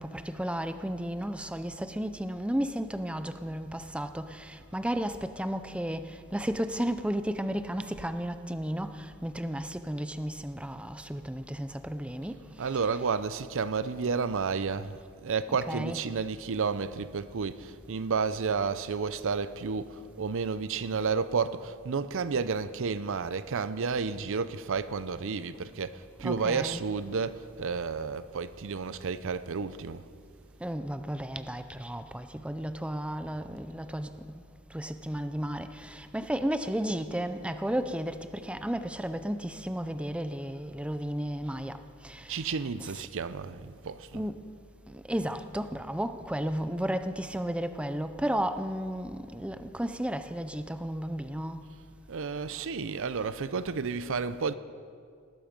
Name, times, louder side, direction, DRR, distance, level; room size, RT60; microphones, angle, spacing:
voice 1, 0.0-13.1 15.5-16.1 26.2-26.8 30.6-34.1 34.7-42.9 44.1-44.5 44.9-51.6 53.0-53.2, equal, 5° right, 0.5 m, -33 dB
voice 2, 12.6-30.0 42.3-44.2 52.1-54.5, right 5 dB, 65° right, 0.6 m, -31 dB
19.5 x 12.5 x 5.3 m
head